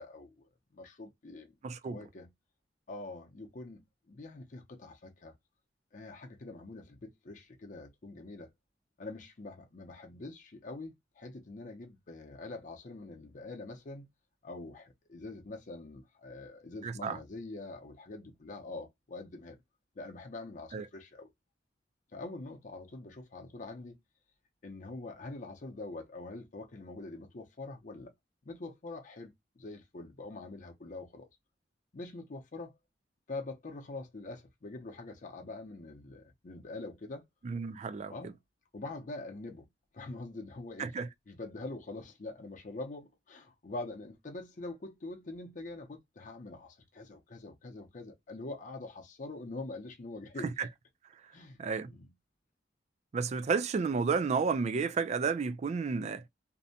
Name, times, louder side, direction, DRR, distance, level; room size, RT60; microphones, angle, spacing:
voice 1, 0.0-1.5 1.8-2.3 2.9-5.3 5.9-8.5 9.0-14.1 14.4-19.6 20.0-21.3 22.1-24.0 24.6-28.1 28.4-31.3 31.9-32.8 33.3-37.2 38.1-38.4 38.7-39.7 39.9-40.9 41.3-50.5 51.3-52.1, left 2 dB, 45° left, 0.6 m, -44 dB
voice 2, 1.6-2.0 16.8-17.2 20.7-20.8 37.4-38.1 40.8-41.1 50.6-50.7 51.6-51.9 53.1-56.2, right 5 dB, 40° right, 0.3 m, -31 dB
2.6 x 2.1 x 2.6 m
head